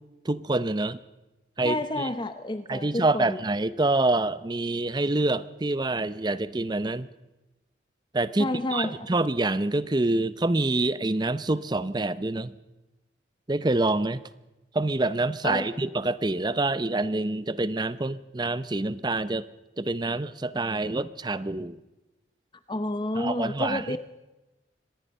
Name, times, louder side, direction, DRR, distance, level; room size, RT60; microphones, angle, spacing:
voice 1, 0.2-1.0 1.6-2.1 2.7-7.1 8.1-12.5 13.5-14.2 14.7-19.5 19.8-21.8 23.2-24.0, right 2 dB, 25° right, 16 dB, 0.6 m, -26 dB
voice 2, 1.6-3.4 8.4-9.0 15.4-15.7 22.7-24.0, left 1 dB, 25° left, 10 dB, 0.7 m, -30 dB
24.5 x 19.0 x 5.4 m, 1.0 s
head